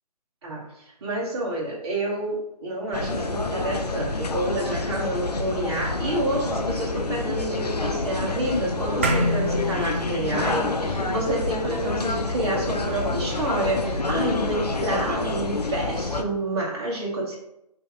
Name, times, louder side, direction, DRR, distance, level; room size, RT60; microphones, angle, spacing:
voice 1, 1.0-17.4, right 1 dB, 40° right, -4 dB, 1.3 m, -29 dB
sound 1, 2.9-16.2, left 3 dB, 80° left, 0.6 m, -28 dB
sound 2, 9.0-13.6, equal, 20° right, 0.3 m, -29 dB
4.4 x 2.9 x 3.8 m, 0.81 s
figure-of-eight pair, 140°, 20 cm